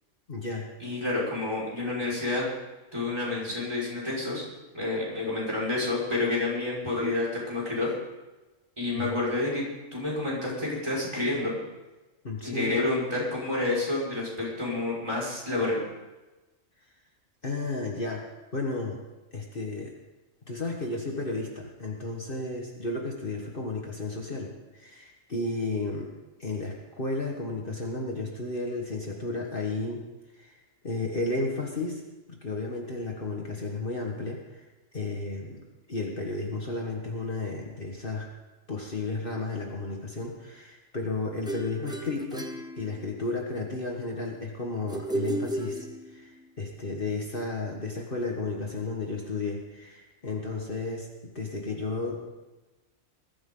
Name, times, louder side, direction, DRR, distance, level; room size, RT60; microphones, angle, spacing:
voice 1, 0.3-0.7 8.9-9.2 12.2-12.7 17.4-18.2 18.5-19.1 19.3-19.9 20.5-26.1 26.4-30.0 30.3-30.6 30.8-32.0 32.3-34.7 34.9-35.6 35.9-38.3 38.7-42.5 42.8-51.1 51.4-52.2, left 3 dB, 45° left, -1 dB, 1.8 m, -33 dB
voice 2, 0.8-2.5 2.9-4.4 4.7-7.9 8.8-11.5 12.4-15.8, left 2 dB, 20° right, -5 dB, 5.7 m, -29 dB
sound 1, 41.5-43.4 44.9-46.4, right 1 dB, 5° right, 1.1 m, -34 dB
21.0 x 14.0 x 3.9 m, 1.1 s
omnidirectional pair, 1.3 m